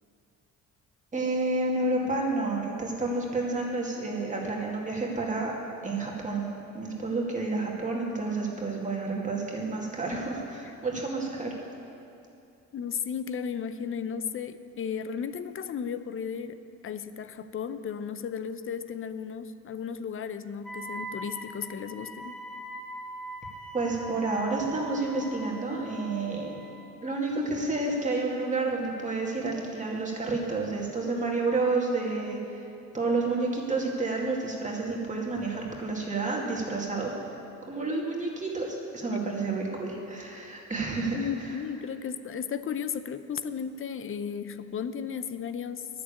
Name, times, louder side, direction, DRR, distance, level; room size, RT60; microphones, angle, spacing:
voice 1, 1.1-11.6 23.7-26.7 27.0-32.6 32.9-37.1 37.7-41.5, right 3 dB, 25° right, -2 dB, 2.2 m, -30 dB
voice 2, 12.7-16.6 16.8-22.4 41.1-45.9, left 7 dB, 45° left, 12 dB, 0.6 m, -34 dB
Wind instrument woodwind instrument, 20.6-27.1, right 1 dB, ahead, 1.7 m, -42 dB
11.0 x 6.8 x 8.7 m, 2.7 s
cardioid pair, 90°, 30 cm